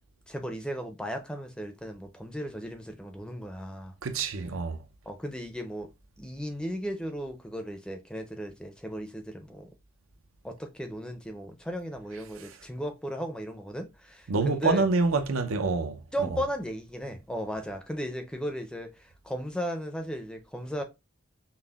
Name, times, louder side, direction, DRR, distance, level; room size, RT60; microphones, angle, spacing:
voice 1, 0.3-3.9 5.1-5.9 6.2-9.7 10.4-14.9 16.1-20.8, equal, 5° left, 0.4 m, -36 dB
voice 2, 4.0-4.8 14.3-16.3, right 3 dB, 85° right, 0.5 m, -27 dB
5.4 x 2.0 x 2.2 m
head